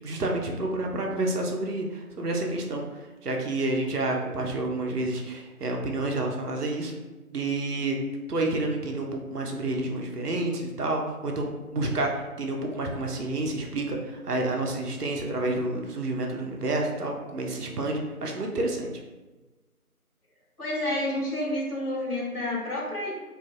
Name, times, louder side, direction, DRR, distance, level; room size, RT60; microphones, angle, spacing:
voice 1, 0.0-2.8 3.2-6.9 7.3-8.0 8.3-18.9, right 2 dB, 90° right, 1 dB, 0.6 m, -29 dB
voice 2, 20.6-23.1, left 1 dB, 80° left, -4 dB, 1.0 m, -29 dB
2.5 x 2.5 x 2.3 m, 1.2 s
figure-of-eight pair, 180°, 45 cm